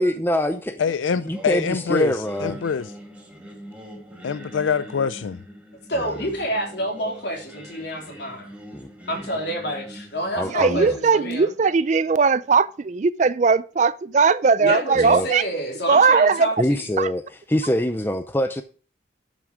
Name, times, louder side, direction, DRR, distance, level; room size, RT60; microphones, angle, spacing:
voice 1, 0.0-0.8 1.2-2.6 8.7-8.9 10.3-10.9 14.9-15.3 16.6-17.2 17.5-18.6, equal, 10° left, 0.5 m, -24 dB
voice 2, 0.8-2.9 4.2-5.4, left 6 dB, 90° left, 0.4 m, -25 dB
Singing, 1.2-12.3, equal, 5° right, 2.0 m, -43 dB
voice 3, 5.9-8.5 9.1-11.5 14.6-16.9, equal, 60° left, 3.4 m, -28 dB
voice 4, 10.5-15.4 15.9-16.5 17.0-17.1, right 5 dB, 40° right, 0.4 m, -19 dB
10.5 x 6.2 x 4.9 m
head